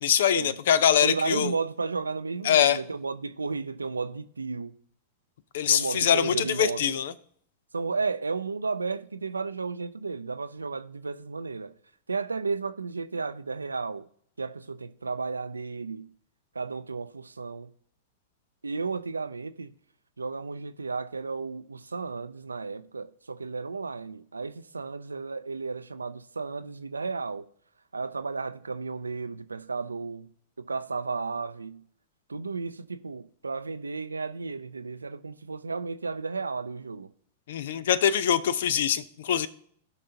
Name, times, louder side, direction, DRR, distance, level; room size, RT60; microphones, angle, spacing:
voice 1, 0.0-1.5 2.4-2.8 5.5-7.1 37.5-39.5, left 9 dB, 65° left, 0.5 m, -23 dB
voice 2, 1.0-4.7 5.7-7.0 7.7-11.7 12.1-14.1 14.4-16.1 16.5-17.7 18.6-19.7 20.2-27.5 27.9-30.3 30.6-31.8 32.3-37.1, right 4 dB, 85° right, 0.4 m, -33 dB
16.0 x 5.4 x 2.8 m
figure-of-eight pair, 100°, 0 cm